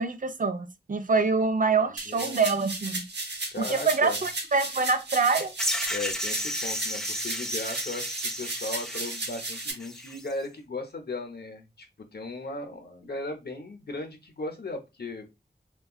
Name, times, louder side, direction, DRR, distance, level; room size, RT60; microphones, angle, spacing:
voice 1, 0.0-3.0 3.6-5.5, right 4 dB, 50° right, 0.5 m, -25 dB
sound 1, 2.0-9.7, right 2 dB, 80° right, 0.7 m, -35 dB
voice 2, 2.1-2.4 3.5-4.2 5.9-11.9 12.1-15.4, left 2 dB, 70° left, 0.7 m, -37 dB
sound 2, 5.6-10.3, equal, 5° left, 0.5 m, -33 dB
3.5 x 2.2 x 2.3 m
wide cardioid pair, 55°, 17 cm